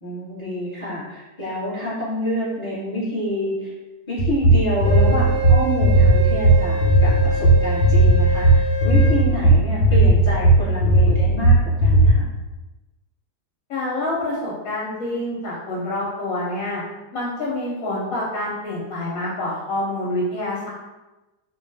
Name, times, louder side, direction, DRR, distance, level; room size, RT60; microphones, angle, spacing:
voice 1, 0.0-3.7 4.1-12.3, equal, 20° left, -11 dB, 1.1 m, -27 dB
sound 1, 4.2-12.1, right 2 dB, 90° left, 1.2 m, -15 dB
Wind instrument woodwind instrument, 4.8-9.3, right 3 dB, 85° right, 0.4 m, -27 dB
voice 2, 13.7-16.8 17.1-20.7, left 1 dB, 65° left, -6 dB, 1.0 m, -27 dB
2.6 x 2.3 x 2.6 m, 1.1 s
omnidirectional pair, 1.7 m